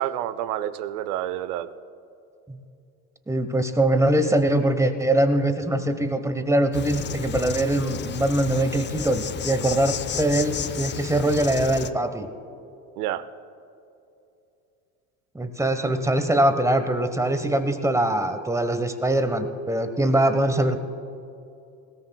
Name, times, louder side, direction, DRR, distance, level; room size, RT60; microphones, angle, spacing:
voice 1, 0.0-1.7 13.0-13.3, right 12 dB, 70° right, 0.8 m, -28 dB
voice 2, 3.3-12.3 15.3-20.8, right 1 dB, 5° right, 1.1 m, -22 dB
Insect, 6.7-11.9, left 8 dB, 25° left, 0.5 m, -32 dB
20.5 x 17.5 x 2.3 m
hypercardioid pair, 75°, 46 cm